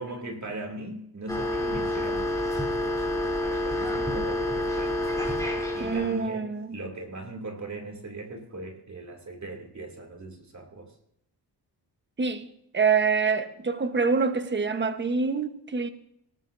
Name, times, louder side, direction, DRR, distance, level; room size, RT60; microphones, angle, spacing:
voice 1, 0.0-5.0 5.7-10.9, right 2 dB, 40° right, 2.8 m, -39 dB
sound 1, 1.3-6.3, left 1 dB, 10° left, 3.3 m, -28 dB
voice 2, 5.8-6.8 12.2-12.5 12.7-15.9, right 5 dB, 25° right, 1.2 m, -26 dB
18.0 x 13.0 x 2.7 m
cardioid pair, 90°, 41 cm